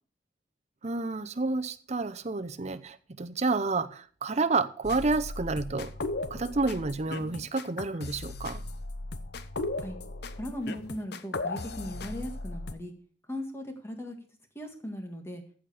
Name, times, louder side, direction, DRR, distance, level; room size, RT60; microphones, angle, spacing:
voice 1, 0.8-5.9 6.3-8.6, right 3 dB, 40° right, 0.7 m, -30 dB
sound 1, 4.8-12.7, left 2 dB, 60° left, 0.9 m, -37 dB
voice 2, 10.3-12.9 13.3-14.2 14.6-15.4, equal, 15° left, 1.8 m, -38 dB
14.5 x 5.1 x 7.0 m
head